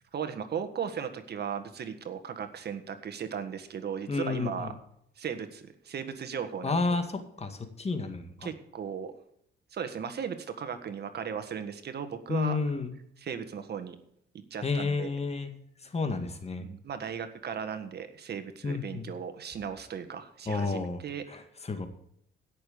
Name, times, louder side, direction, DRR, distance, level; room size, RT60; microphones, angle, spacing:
voice 1, 0.1-4.7 5.2-7.0 8.4-9.1 9.7-12.6 13.2-14.0 14.5-15.1 16.6-21.2, right 7 dB, 55° right, 9 dB, 1.6 m, -37 dB
voice 2, 4.1-4.8 6.6-8.5 12.3-12.9 14.6-15.5 15.8-16.7 18.6-19.1 20.5-21.0 21.3-21.9, left 4 dB, 30° left, 7 dB, 2.0 m, -31 dB
16.5 x 6.8 x 5.2 m, 0.71 s
cardioid pair, 90°, 20 cm